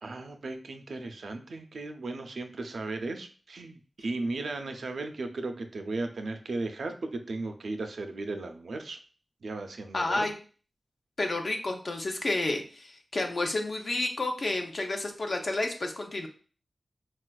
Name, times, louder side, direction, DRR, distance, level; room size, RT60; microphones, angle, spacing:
voice 1, 0.0-9.0 9.4-10.3, right 2 dB, 80° right, 5 dB, 0.4 m, -36 dB
voice 2, 9.9-10.4 11.2-16.3, left 2 dB, 60° left, 4 dB, 0.6 m, -30 dB
4.2 x 2.3 x 2.2 m, 0.40 s
wide cardioid pair, 65°, 0 cm